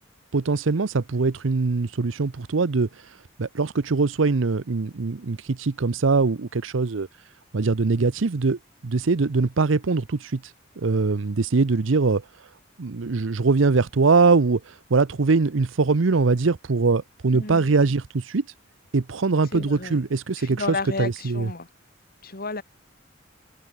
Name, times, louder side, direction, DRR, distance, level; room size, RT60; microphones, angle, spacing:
voice 1, 0.3-2.9 3.4-7.1 7.5-10.4 10.8-12.2 12.8-18.4 18.9-21.5, right 4 dB, 80° right, 0.7 m, -22 dB
voice 2, 17.3-17.7 19.5-20.0 20.4-21.7 22.2-22.6, left 3 dB, 50° left, 2.9 m, -32 dB
head